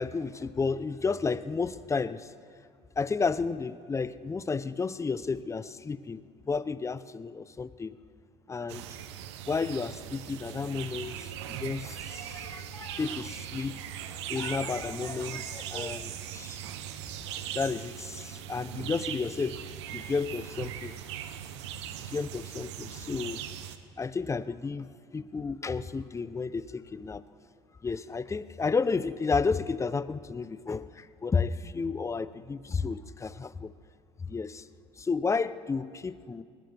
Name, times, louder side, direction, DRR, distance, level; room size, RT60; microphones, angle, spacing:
voice 1, 0.0-2.3 3.0-8.0 8.5-8.8 9.5-13.8 14.3-16.7 17.5-19.6 19.9-20.9 22.1-23.4 24.0-27.2 27.8-33.7 34.2-34.7 35.0-36.4, left 4 dB, 20° left, 15 dB, 0.7 m, -32 dB
sound 1, 8.7-23.8, right 10 dB, 85° right, 0.9 m, -40 dB
21.5 x 19.5 x 3.5 m, 2.2 s
hypercardioid pair, 75°, 14 cm